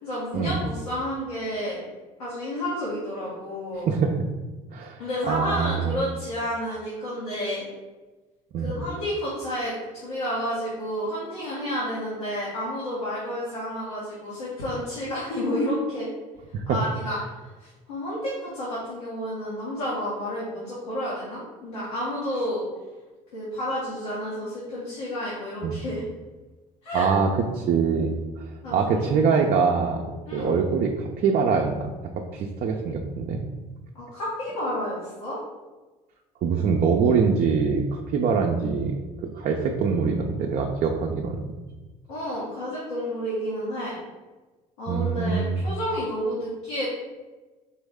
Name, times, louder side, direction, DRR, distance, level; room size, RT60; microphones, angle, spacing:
voice 1, 0.0-1.8 2.2-3.9 5.0-7.6 8.6-16.1 16.7-22.6 23.3-26.0 26.8-27.1 28.6-29.2 30.3-30.5 33.9-35.4 42.1-44.0 44.8-46.8, equal, 90° left, -9 dB, 1.4 m, -30 dB
voice 2, 5.3-5.9 8.5-8.7 16.5-16.8 25.6-25.7 26.9-27.3 27.5-30.1 30.3-33.4 36.4-39.0 39.3-41.4 44.9-45.6, right 5 dB, 50° right, 1 dB, 0.6 m, -24 dB
4.5 x 3.1 x 3.5 m, 1.2 s
hypercardioid pair, 65°, 18 cm